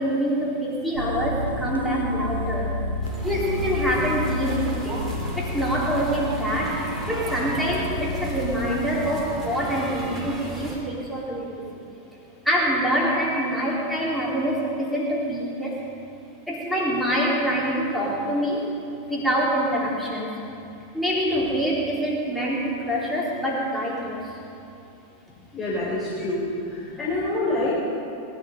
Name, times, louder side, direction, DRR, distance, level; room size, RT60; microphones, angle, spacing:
voice 1, 0.0-2.8 3.2-6.8 7.1-11.6 12.4-15.8 16.5-18.7 19.1-20.4 20.9-24.3 26.9-27.0, equal, ahead, -5 dB, 3.9 m, -25 dB
sound 1, 0.9-8.4, left 1 dB, 80° left, 1.1 m, -30 dB
sound 2, 3.0-10.8, right 1 dB, 15° right, 3.0 m, -34 dB
voice 2, 25.5-27.7, left 2 dB, 20° left, -8 dB, 3.9 m, -27 dB
20.0 x 12.0 x 5.4 m, 2.7 s
figure-of-eight pair, 90°, 0 cm